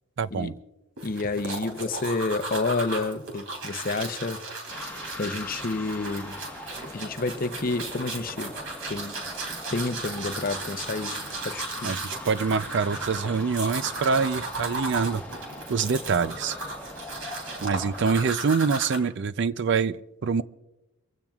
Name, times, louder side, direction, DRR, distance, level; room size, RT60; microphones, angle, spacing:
voice 1, 0.2-0.5 11.8-15.2 15.7-16.6 17.6-20.4, right 5 dB, 55° right, 0.4 m, -25 dB
voice 2, 1.0-4.4 5.2-6.4 6.9-8.6 8.9-9.2 9.7-11.9, left 3 dB, 40° left, 0.7 m, -29 dB
sound 1, 1.0-19.0, right 2 dB, 70° right, 3.1 m, -36 dB
sound 2, 4.7-18.3, left 2 dB, 5° left, 1.3 m, -42 dB
24.0 x 16.0 x 2.4 m
head